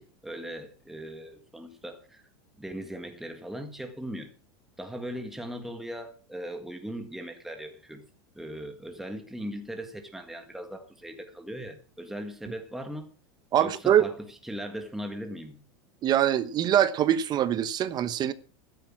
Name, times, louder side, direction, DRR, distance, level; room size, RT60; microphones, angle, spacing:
voice 1, 0.0-2.2 2.6-4.3 4.8-8.0 8.3-13.1 13.6-15.6, equal, 5° right, 1.7 m, -39 dB
voice 2, 13.5-14.1 16.0-18.3, right 10 dB, 35° right, 1.0 m, -23 dB
13.0 x 10.5 x 6.0 m
supercardioid pair, 135°, 13 cm